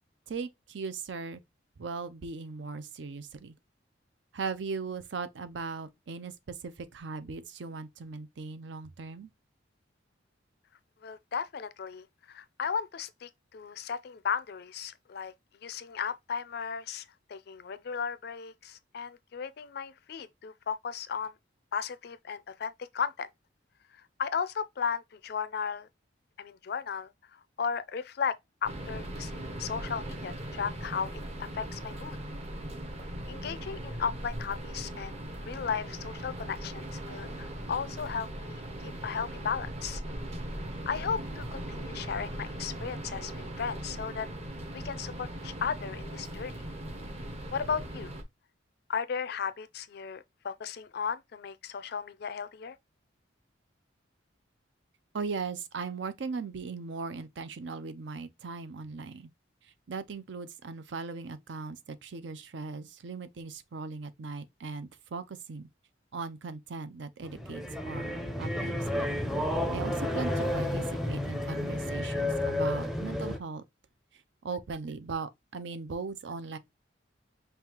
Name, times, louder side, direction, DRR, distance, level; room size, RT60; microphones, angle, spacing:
voice 1, 0.3-1.4 1.8-3.5 4.3-9.3 55.1-59.3 59.6-65.7 66.1-69.1 69.7-73.6 74.1-76.6, right 4 dB, 70° right, 0.5 m, -39 dB
voice 2, 11.0-15.3 15.6-21.3 21.7-23.3 23.9-25.9 26.4-32.2 33.3-35.1 35.4-40.0 40.9-44.3 44.7-46.6 47.5-48.1 48.9-52.8, left 6 dB, 55° left, 0.4 m, -35 dB
sound 1, 28.6-48.2, right 1 dB, 35° right, 0.8 m, -39 dB
sound 2, 67.2-73.4, left 1 dB, ahead, 0.5 m, -31 dB
5.4 x 2.3 x 2.9 m
head